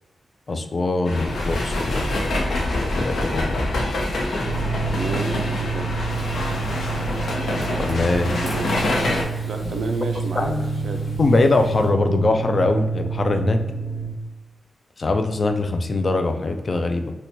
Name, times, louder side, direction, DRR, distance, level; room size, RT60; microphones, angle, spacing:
voice 1, 0.5-3.6 7.8-8.3 10.4-10.5 11.2-13.6 15.0-17.1, left 2 dB, 40° left, 6 dB, 0.3 m, -22 dB
sound 1, 1.0-9.2, left 1 dB, 90° left, 0.5 m, -25 dB
sound 2, 4.4-14.1, right 4 dB, 15° left, 1.1 m, -28 dB
voice 2, 5.0-5.9 8.2-8.7 9.4-10.5 10.8-11.0, right 3 dB, 85° right, 5 dB, 0.4 m, -30 dB
Frying (food), 6.1-11.9, left 1 dB, 65° left, 1.2 m, -42 dB
2.8 x 2.2 x 4.0 m, 1.1 s
wide cardioid pair, 125°, 0 cm